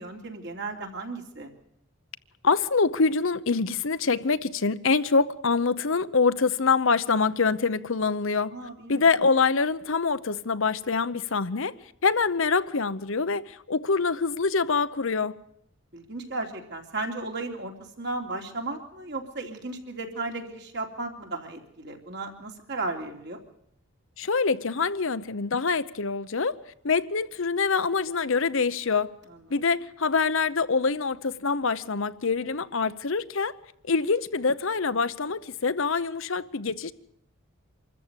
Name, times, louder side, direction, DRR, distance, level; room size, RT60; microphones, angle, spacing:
voice 1, 0.0-1.5 8.5-9.0 15.9-23.4 29.3-29.4, right 2 dB, 50° right, 3.1 m, -35 dB
voice 2, 2.4-8.5 8.9-11.7 12.0-15.3 24.2-26.6 26.8-29.1 29.5-33.5 33.9-36.9, left 4 dB, 60° left, 0.8 m, -25 dB
25.5 x 14.0 x 8.2 m
head